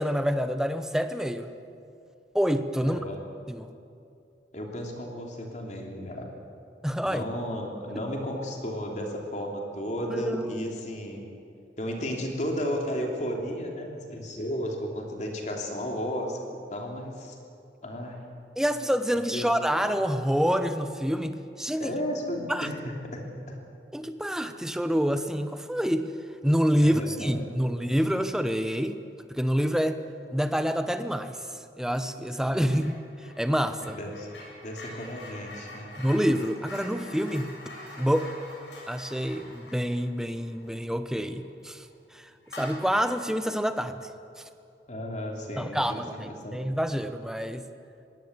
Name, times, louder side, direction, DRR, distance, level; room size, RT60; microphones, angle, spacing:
voice 1, 0.0-1.5 2.3-3.0 3.5-3.7 6.8-7.2 10.1-10.7 18.6-21.9 22.5-22.7 23.9-26.1 26.4-29.0 29.3-30.0 30.3-31.4 31.8-33.0 33.4-34.0 36.0-37.5 38.0-38.3 38.9-41.9 42.1-42.3 42.6-44.1 45.6-47.6, equal, 5° right, 9 dB, 0.8 m, -27 dB
voice 2, 2.8-3.2 4.5-6.3 7.0-11.2 11.8-17.4 17.8-18.3 19.3-19.5 21.8-23.6 26.8-27.6 32.5-32.6 33.8-34.3 34.6-35.9 44.9-46.6, equal, 40° left, 1 dB, 3.1 m, -34 dB
sound 1, 32.6-33.0 33.2-41.4 41.7-41.9 42.4-43.3, left 1 dB, 85° left, 7.4 m, -45 dB
21.5 x 17.5 x 8.1 m, 2.6 s
head